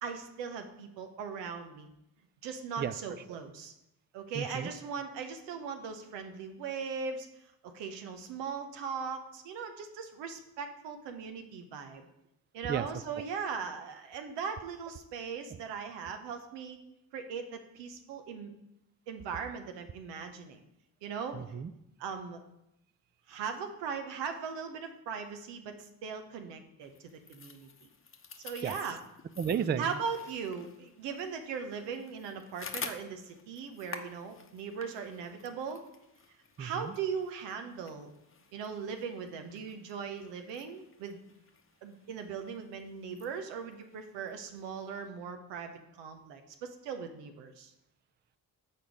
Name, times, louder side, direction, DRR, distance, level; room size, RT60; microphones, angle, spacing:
voice 1, 0.0-1.9 2.4-3.7 4.1-7.3 7.6-12.1 12.5-16.8 17.1-18.5 19.1-20.6 21.0-21.4 22.0-22.4 23.3-26.9 27.3-27.7 28.4-29.0 29.8-35.8 36.6-38.1 38.5-41.2 41.8-47.7, right 6 dB, 90° right, 6 dB, 0.8 m, -39 dB
voice 2, 4.3-4.7 12.7-12.9 21.3-21.7 28.6-28.8 29.4-29.8 36.6-36.9, right 8 dB, 25° right, 14 dB, 0.4 m, -33 dB
sound 1, 26.8-45.0, left 5 dB, 30° left, 0.8 m, -50 dB
6.7 x 4.2 x 4.9 m, 0.85 s
supercardioid pair, 50°, 41 cm